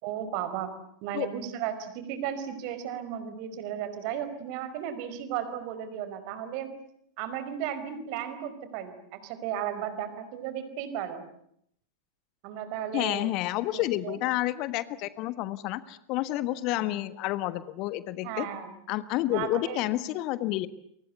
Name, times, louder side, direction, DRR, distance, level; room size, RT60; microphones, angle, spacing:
voice 1, 0.0-0.7 1.0-6.7 7.2-11.2 12.4-13.3 13.7-14.2 18.2-18.7 19.3-19.8, right 9 dB, 45° right, 11 dB, 4.8 m, -35 dB
voice 2, 12.9-18.5 18.9-20.7, left 16 dB, 40° left, 15 dB, 1.4 m, -30 dB
29.0 x 24.5 x 8.1 m, 0.71 s
figure-of-eight pair, 90°, 0 cm